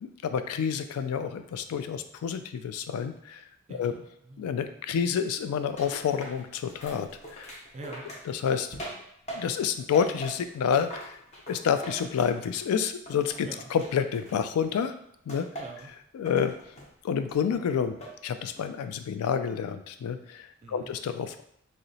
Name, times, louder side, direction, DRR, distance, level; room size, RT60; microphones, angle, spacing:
voice 1, 0.0-3.9 4.4-7.5 8.3-9.0 9.3-11.2 11.5-14.9 15.3-15.5 16.1-16.5 17.0-18.0 18.2-21.4, left 7 dB, 80° left, 13 dB, 0.3 m, -29 dB
voice 2, 3.7-4.5 7.7-8.1 13.4-13.7 15.6-15.9 20.6-20.9, right 2 dB, 30° right, 3 dB, 0.4 m, -44 dB
sound 1, 5.8-9.7 9.9-12.7 13.1-14.7 15.3-15.9 16.3-16.9 17.3-18.2 18.6-19.0, right 1 dB, 30° left, 0.6 m, -42 dB
2.8 x 2.0 x 3.9 m, 0.72 s
head